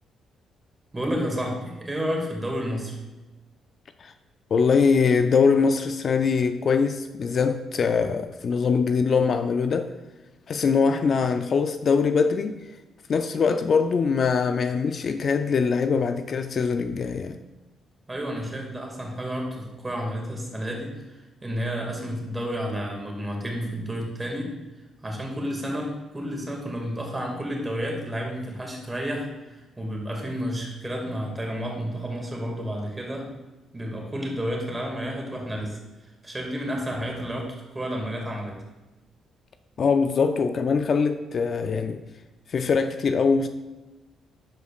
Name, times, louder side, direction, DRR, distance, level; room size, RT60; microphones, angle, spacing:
voice 1, 0.9-3.0 18.1-24.5 25.0-33.3 33.7-38.6, equal, 20° right, 2.0 m, -31 dB
voice 2, 4.5-9.9 10.5-12.6 13.1-17.4 39.8-42.0 42.5-43.5, left 5 dB, 50° left, 0.4 m, -22 dB
11.5 x 4.9 x 2.4 m
cardioid pair, 90°, 0 cm